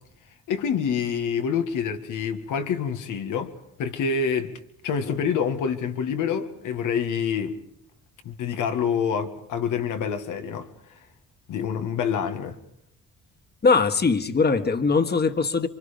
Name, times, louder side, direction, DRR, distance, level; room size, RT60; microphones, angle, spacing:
voice 1, 0.5-3.5 3.8-7.5 8.2-10.7 11.5-12.6, left 6 dB, 85° left, 2.2 m, -27 dB
voice 2, 13.6-15.7, left 4 dB, 35° left, 1.8 m, -21 dB
28.0 x 25.0 x 5.4 m
cardioid pair, 90°, 30 cm